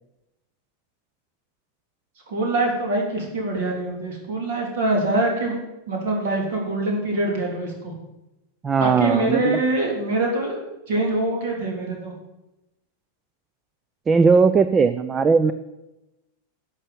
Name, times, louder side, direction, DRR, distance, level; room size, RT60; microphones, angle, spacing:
voice 1, 2.3-5.6 5.9-7.9 8.8-10.6 10.9-12.1, right 2 dB, 55° right, 1 dB, 3.5 m, -24 dB
voice 2, 8.6-9.6 14.1-15.5, right 5 dB, 20° right, 12 dB, 0.5 m, -18 dB
11.0 x 6.7 x 8.5 m, 0.96 s
figure-of-eight pair, 90°, 0 cm